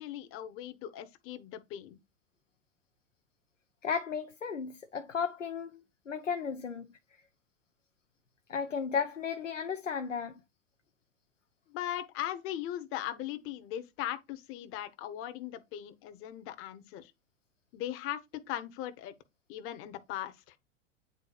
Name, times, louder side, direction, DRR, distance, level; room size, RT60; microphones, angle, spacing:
voice 1, 0.0-2.0 11.7-17.1 17.7-19.1 19.5-20.6, left 12 dB, 35° left, 1.1 m, -39 dB
voice 2, 3.8-7.0 8.5-10.4, left 6 dB, 85° left, 0.8 m, -34 dB
9.8 x 4.0 x 2.4 m
figure-of-eight pair, 90°, 36 cm